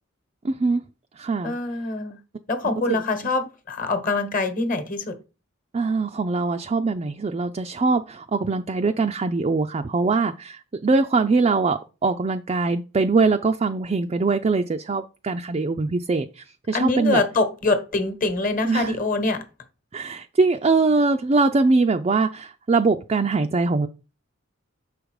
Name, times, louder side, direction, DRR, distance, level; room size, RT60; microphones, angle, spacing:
voice 1, 0.4-0.8 1.2-1.6 2.9-3.0 5.7-17.2 18.6-19.0 19.9-23.9, right 3 dB, 30° right, 0.4 m, -22 dB
voice 2, 1.4-2.2 2.5-5.2 16.7-19.5, left 3 dB, 40° left, 1.2 m, -24 dB
6.9 x 5.1 x 4.7 m
head